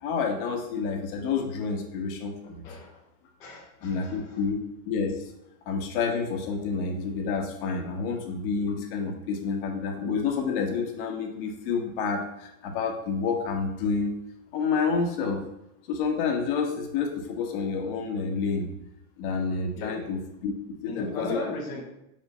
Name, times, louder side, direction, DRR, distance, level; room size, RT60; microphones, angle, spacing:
voice 1, 0.0-2.6 3.8-4.6 4.9-5.2 5.6-14.1 14.5-15.4 15.9-18.7 19.2-20.5 20.8-21.4, left 5 dB, 40° left, 3 dB, 1.4 m, -29 dB
voice 2, 3.4-4.4 19.8-20.1 20.9-21.8, left 2 dB, 10° left, -4 dB, 0.4 m, -37 dB
5.3 x 4.6 x 5.5 m, 0.85 s
supercardioid pair, 155°, 43 cm